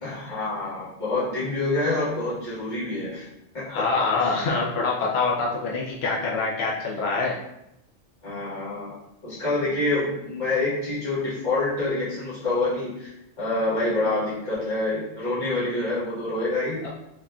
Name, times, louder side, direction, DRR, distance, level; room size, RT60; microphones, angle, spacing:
voice 1, 0.0-3.3 3.5-3.8 4.2-4.4 8.2-9.0 9.2-16.8, left 2 dB, 35° left, -10 dB, 1.4 m, -27 dB
voice 2, 3.7-7.4 16.8-16.9, left 4 dB, 65° left, -3 dB, 0.7 m, -25 dB
3.4 x 2.4 x 2.2 m, 0.81 s
omnidirectional pair, 1.4 m